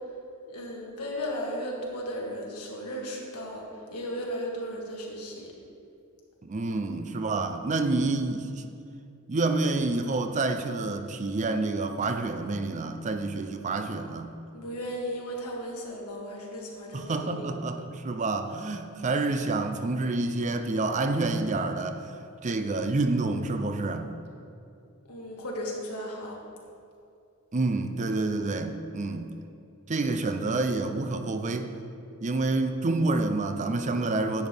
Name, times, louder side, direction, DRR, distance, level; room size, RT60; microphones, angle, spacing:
voice 1, 0.5-3.6 3.9-5.5 14.5-17.5 25.1-26.4, equal, 90° left, -1 dB, 1.7 m, -35 dB
voice 2, 6.4-8.6 9.3-14.3 16.9-22.1 22.4-24.1 27.5-29.3 29.9-31.7 32.2-34.5, right 3 dB, 35° right, 7 dB, 0.5 m, -28 dB
10.5 x 8.0 x 3.5 m, 2.6 s
head